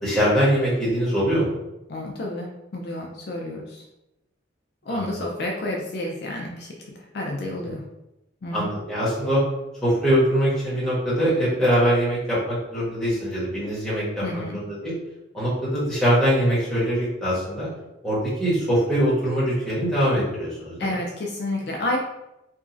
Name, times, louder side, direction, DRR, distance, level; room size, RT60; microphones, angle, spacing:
voice 1, 0.0-1.5 4.9-5.0 8.5-9.4 9.8-14.9 15.3-17.7 18.0-20.9, equal, ahead, -10 dB, 1.2 m, -23 dB
voice 2, 1.9-3.8 4.8-6.7 7.1-7.8 8.4-8.7 14.2-14.6 20.8-22.0, left 1 dB, 55° left, -1 dB, 0.4 m, -30 dB
2.9 x 2.4 x 2.5 m, 0.92 s
head